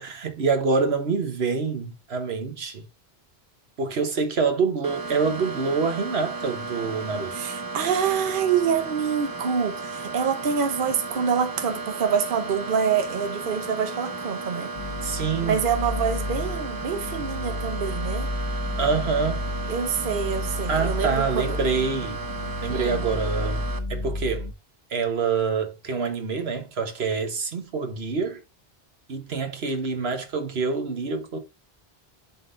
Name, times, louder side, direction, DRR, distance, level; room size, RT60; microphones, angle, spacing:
voice 1, 0.0-2.8 3.8-7.3 15.0-15.6 18.8-19.5 20.7-22.2 22.6-24.5 24.9-28.4 29.1-31.4, right 5 dB, 80° right, 1.4 m, -26 dB
sound 1, 4.8-23.8, right 3 dB, 25° right, 0.6 m, -35 dB
voice 2, 7.3-14.7 15.4-18.3 19.7-21.5 22.7-23.1, right 7 dB, 60° right, 1.0 m, -26 dB
sound 2, 14.7-24.5, left 1 dB, 35° left, 0.7 m, -31 dB
11.0 x 3.8 x 2.6 m
omnidirectional pair, 1.0 m